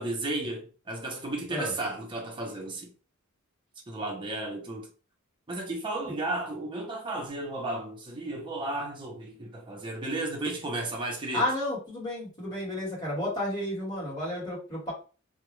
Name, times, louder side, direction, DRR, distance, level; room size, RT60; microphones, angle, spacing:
voice 1, 0.0-2.9 3.9-4.9 5.5-11.5, right 2 dB, 20° right, 0.6 m, -34 dB
voice 2, 11.3-14.9, left 1 dB, 20° left, 1.3 m, -31 dB
2.3 x 2.0 x 3.0 m
head